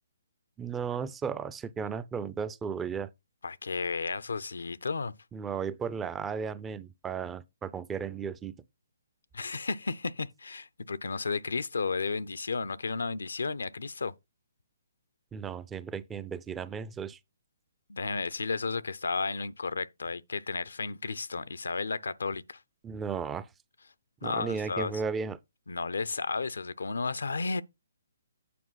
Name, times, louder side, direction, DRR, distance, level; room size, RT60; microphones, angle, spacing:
voice 1, 0.6-3.1 5.3-8.5 15.3-17.2 22.8-23.5 24.2-25.4, right 6 dB, 15° right, 0.5 m, -35 dB
voice 2, 3.4-5.1 9.3-14.1 17.9-22.6 24.2-24.9 25.7-27.6, left 4 dB, 75° left, 0.6 m, -33 dB
8.5 x 4.5 x 5.6 m
figure-of-eight pair, 140°, 0 cm